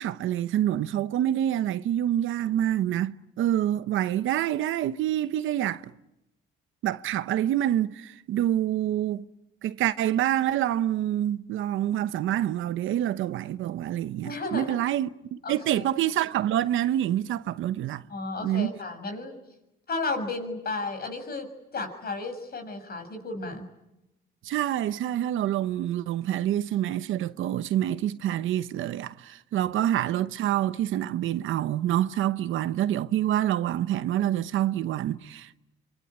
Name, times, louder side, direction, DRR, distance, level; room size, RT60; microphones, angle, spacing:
voice 1, 0.0-5.9 6.8-9.2 9.6-18.0 18.4-18.7 24.4-35.6, right 12 dB, 80° right, 1.0 m, -27 dB
voice 2, 14.2-14.8 15.4-15.8 18.1-19.4 19.9-23.6, left 3 dB, 50° left, 6.9 m, -33 dB
26.0 x 23.5 x 9.7 m
cardioid pair, 90°, 20 cm